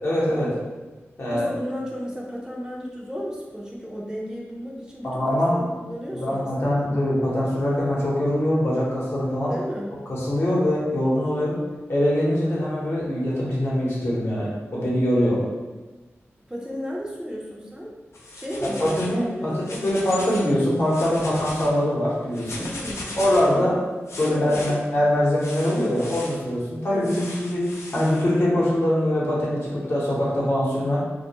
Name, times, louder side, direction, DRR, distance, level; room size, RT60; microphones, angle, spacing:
voice 1, 0.0-0.5 1.2-1.5 5.0-5.6 6.2-9.5 10.1-11.6 11.9-15.4 18.6-22.6 23.2-23.8 24.2-27.6 27.9-31.0, left 1 dB, 60° left, -6 dB, 0.8 m, -23 dB
voice 2, 1.3-6.9 9.5-9.9 16.5-17.9 18.3-19.5 22.5-23.2 23.5-23.8 24.2-24.8 26.9-27.3, equal, 15° right, -4 dB, 0.4 m, -34 dB
sound 1, 18.1-19.2 19.5-20.5 20.8-21.7 22.3-23.5 24.1-24.7 25.4-26.4 27.0-28.2, left 2 dB, 80° left, 0.4 m, -37 dB
2.2 x 2.1 x 2.8 m, 1.2 s
wide cardioid pair, 70°, 5 cm